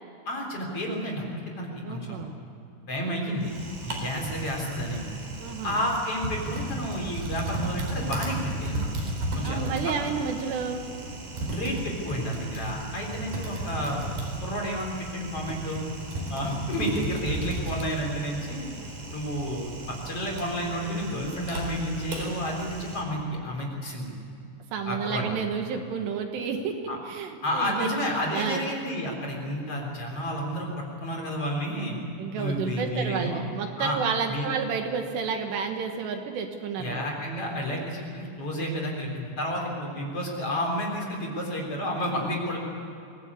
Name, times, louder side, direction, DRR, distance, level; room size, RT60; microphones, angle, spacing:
voice 1, 0.3-2.2 2.9-3.5 3.8-5.0 5.6-8.8 9.4-10.1 11.5-14.0 14.4-15.8 16.3-18.7 19.1-24.1 24.9-25.3 26.9-27.0 27.4-32.0 32.4-33.4 33.8-34.0 34.3-34.5 36.8-42.6, equal, 35° left, 0 dB, 4.4 m, -31 dB
voice 2, 1.8-2.4 5.4-5.8 9.4-10.8 24.7-26.8 27.1-27.9 28.3-28.6 32.2-37.1, right 6 dB, 70° right, 4 dB, 3.5 m, -30 dB
Typing, 3.4-23.0, right 2 dB, 50° right, 5.4 m, -35 dB
24.5 x 18.5 x 8.4 m, 2.7 s
omnidirectional pair, 5.3 m